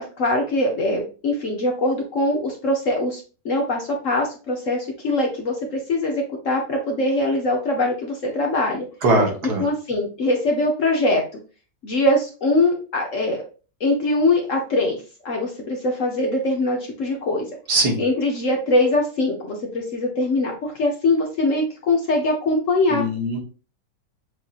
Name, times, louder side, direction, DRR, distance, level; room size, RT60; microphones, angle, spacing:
voice 1, 0.0-3.2 3.4-8.9 9.6-11.2 11.8-13.4 13.8-17.5 18.0-23.0, left 2 dB, 55° left, 1 dB, 1.0 m, -22 dB
voice 2, 9.0-9.6 17.7-18.0 22.9-23.4, right 1 dB, 65° right, 2 dB, 1.7 m, -20 dB
7.1 x 2.7 x 2.4 m, 0.35 s
omnidirectional pair, 2.0 m